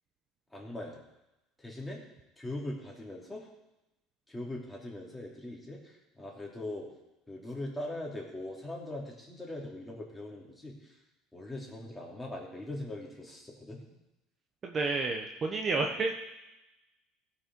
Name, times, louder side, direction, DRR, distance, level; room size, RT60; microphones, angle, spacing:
voice 1, 0.5-1.0 1.6-2.0 2.4-3.5 4.3-6.9 7.3-11.0 11.3-13.8, left 1 dB, 5° left, -3 dB, 2.9 m, -41 dB
voice 2, 14.6-16.1, right 3 dB, 30° right, 2 dB, 1.1 m, -30 dB
16.5 x 6.2 x 4.6 m, 0.96 s
cardioid pair, 125°, 0 cm